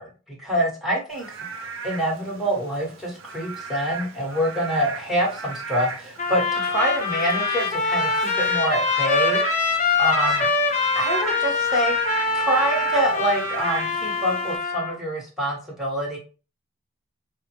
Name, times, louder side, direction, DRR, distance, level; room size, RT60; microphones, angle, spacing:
voice 1, 0.0-9.4 10.0-10.4 10.9-16.2, equal, ahead, -4 dB, 1.3 m, -26 dB
Frog / Rain, 1.1-14.6, right 5 dB, 90° right, 0.6 m, -35 dB
Trumpet, 6.2-15.0, left 4 dB, 35° left, 0.6 m, -24 dB
4.9 x 2.1 x 3.0 m, 0.35 s
head